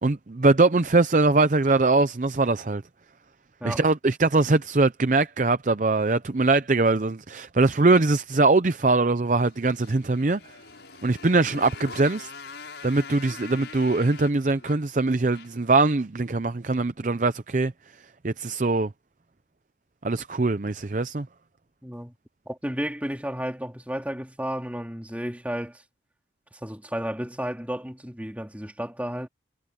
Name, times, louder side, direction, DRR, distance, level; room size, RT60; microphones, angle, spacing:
voice 1, 0.0-2.8 3.6-10.4 11.0-12.3 12.8-17.7 18.2-18.9 20.0-21.3, right 3 dB, 45° right, 0.6 m, -22 dB
Motorcycle, 9.4-15.7, left 4 dB, 80° left, 6.4 m, -43 dB
voice 2, 21.8-22.1 22.5-25.8 26.5-29.3, equal, 10° right, 2.4 m, -32 dB
head